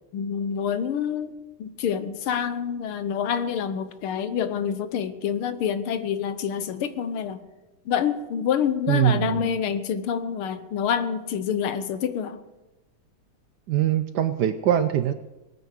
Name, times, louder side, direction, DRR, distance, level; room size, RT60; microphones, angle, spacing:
voice 1, 0.1-1.3 1.6-7.4 7.9-12.4, left 8 dB, 85° left, 12 dB, 1.8 m, -27 dB
voice 2, 8.9-9.6 13.7-15.1, right 11 dB, 70° right, 11 dB, 1.0 m, -22 dB
19.0 x 9.3 x 6.6 m, 1.1 s
omnidirectional pair, 2.3 m